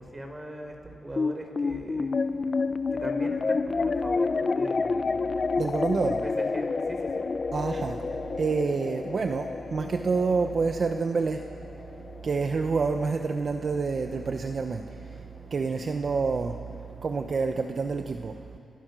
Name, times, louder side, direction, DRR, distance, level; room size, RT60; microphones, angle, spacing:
voice 1, 0.0-2.1 2.9-5.3 6.0-7.2, right 1 dB, 20° right, 3 dB, 5.5 m, -40 dB
sound 1, 1.2-13.8, left 4 dB, 40° left, 1.0 m, -29 dB
voice 2, 5.6-6.2 7.5-8.0 8.4-11.5 12.2-14.8 15.5-16.6 17.0-18.4, right 4 dB, 45° right, 6 dB, 1.2 m, -27 dB
29.5 x 27.5 x 6.4 m, 2.5 s
cardioid pair, 85°, 0 cm